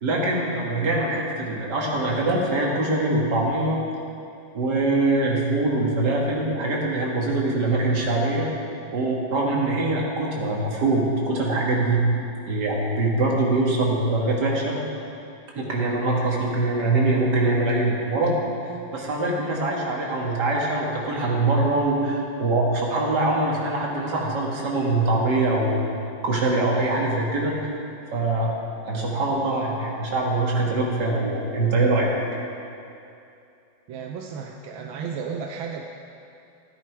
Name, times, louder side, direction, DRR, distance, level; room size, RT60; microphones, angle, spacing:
voice 1, 0.0-3.8 4.5-8.5 8.9-12.1 12.5-14.8 15.5-18.4 18.9-25.9 26.2-27.5 28.1-28.6 28.9-32.1, right 2 dB, 55° right, -3 dB, 2.4 m, -23 dB
voice 2, 33.9-35.8, right 6 dB, 85° right, 2 dB, 1.5 m, -33 dB
14.0 x 10.5 x 4.7 m, 2.6 s
omnidirectional pair, 2.2 m